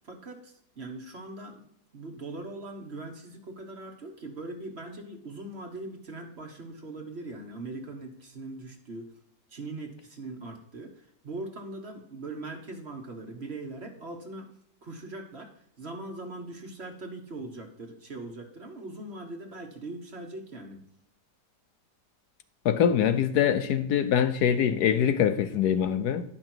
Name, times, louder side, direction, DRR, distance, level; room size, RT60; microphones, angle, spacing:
voice 1, 0.0-1.6 1.9-9.1 9.5-14.5 14.8-15.5 15.8-20.8, right 2 dB, 40° right, 1.4 m, -41 dB
voice 2, 22.6-26.2, left 9 dB, 70° left, 1.1 m, -24 dB
10.5 x 5.8 x 4.4 m
omnidirectional pair, 1.8 m